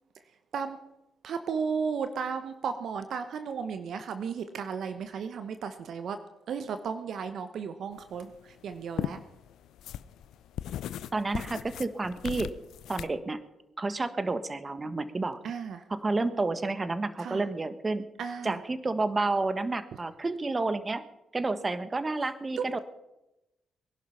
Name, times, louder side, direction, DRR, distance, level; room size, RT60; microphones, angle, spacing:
voice 1, 1.2-6.2 6.5-9.2 15.4-15.8 17.2-17.4 18.2-18.6 22.6-22.8, right 6 dB, 65° right, 9 dB, 1.1 m, -34 dB
sound 1, 8.0-13.1, left 11 dB, 70° left, 0.6 m, -38 dB
voice 2, 11.1-12.5 12.9-13.4 13.8-15.4 15.9-18.1 18.4-21.0 21.3-22.8, right 3 dB, 30° right, 12 dB, 1.5 m, -30 dB
21.5 x 11.5 x 5.7 m, 0.93 s
hypercardioid pair, 45°, 0 cm